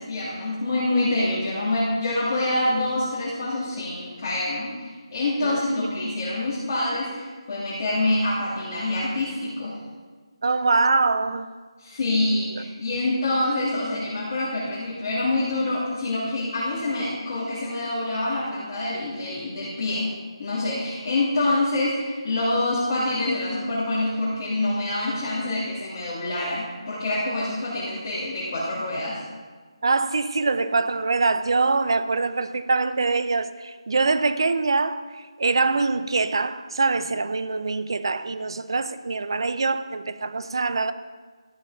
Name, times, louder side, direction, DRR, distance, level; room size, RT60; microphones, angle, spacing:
voice 1, 0.0-9.8 11.8-29.2, left 2 dB, 35° left, 3.0 m, -26 dB
voice 2, 10.4-11.5 12.6-12.7 29.8-40.9, right 3 dB, 50° right, 0.7 m, -24 dB
13.5 x 6.2 x 5.8 m
figure-of-eight pair, 175°, 3 cm